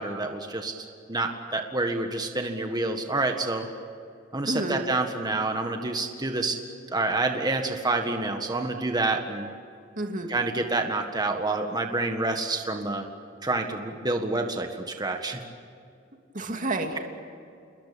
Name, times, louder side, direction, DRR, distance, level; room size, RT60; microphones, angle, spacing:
voice 1, 0.0-3.7 4.3-6.6 6.9-9.5 10.3-13.1 13.4-14.7 15.0-15.4, right 2 dB, 20° right, 4 dB, 1.7 m, -28 dB
voice 2, 4.4-4.8 10.0-10.3 16.3-17.0, right 2 dB, 40° right, 3 dB, 2.5 m, -29 dB
29.5 x 21.5 x 8.5 m, 2.5 s
head